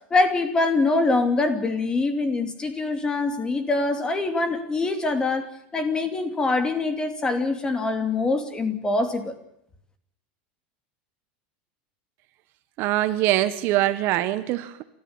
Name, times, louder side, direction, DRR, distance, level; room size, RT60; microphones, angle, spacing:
voice 1, 0.1-9.3, left 3 dB, 15° left, 8 dB, 2.6 m, -24 dB
voice 2, 12.8-14.8, right 15 dB, 45° right, 12 dB, 1.3 m, -23 dB
29.5 x 14.0 x 8.8 m, 0.75 s
supercardioid pair, 150°, 5 cm